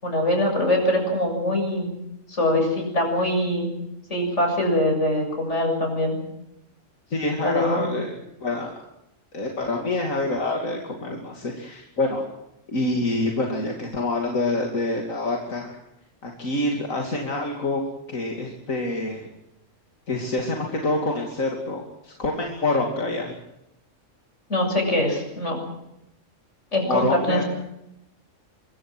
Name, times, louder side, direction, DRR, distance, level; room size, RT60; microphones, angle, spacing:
voice 1, 0.0-1.9 2.3-3.7 4.1-6.2 7.4-7.8 24.5-25.6 26.7-27.4, left 1 dB, 60° left, 3 dB, 7.6 m, -23 dB
voice 2, 7.1-8.7 9.3-12.3 12.7-15.8 16.2-17.8 18.1-19.3 20.1-23.4 26.9-27.4, left 2 dB, 85° left, 0 dB, 3.2 m, -26 dB
24.5 x 23.5 x 6.2 m, 0.84 s
omnidirectional pair, 1.4 m